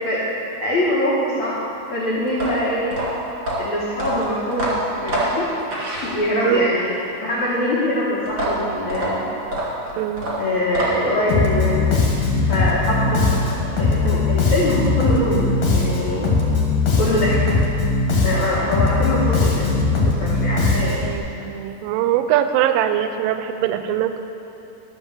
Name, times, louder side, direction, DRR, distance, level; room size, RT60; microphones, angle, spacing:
voice 1, 0.6-1.6 1.9-2.9 3.6-4.7 5.0-5.5 6.0-9.2 10.4-12.0 12.4-16.3 17.0-17.6 18.2-21.0, left 1 dB, 90° left, -7 dB, 1.6 m, -23 dB
sound 1, 2.3-6.6 8.3-11.2, right 1 dB, 40° right, 1.8 m, -26 dB
voice 2, 10.0-10.3 21.0-24.2, right 10 dB, 85° right, 9 dB, 3.1 m, -22 dB
Bass guitar, 11.3-21.2, left 3 dB, 55° left, 2.2 m, -19 dB
12.5 x 5.3 x 7.4 m, 2.9 s
omnidirectional pair, 5.5 m